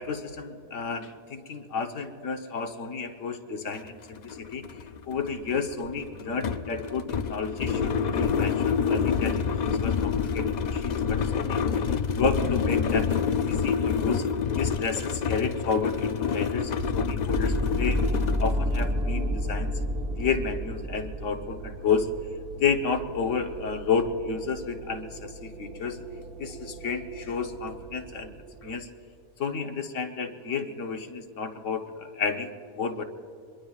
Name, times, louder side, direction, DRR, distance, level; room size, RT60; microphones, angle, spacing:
voice 1, 0.0-4.7 5.1-11.6 12.1-13.1 13.5-14.2 14.6-18.0 18.4-19.7 20.2-22.1 22.6-26.0 26.4-28.3 28.6-28.9 29.4-33.0, left 5 dB, 80° left, 5 dB, 1.4 m, -31 dB
sound 1, 3.7-3.8 4.2-18.9, left 6 dB, 50° left, 0.5 m, -28 dB
sound 2, 16.8-28.7, equal, 55° right, 1.4 m, -32 dB
25.5 x 22.0 x 2.4 m, 2.4 s
omnidirectional pair, 1.3 m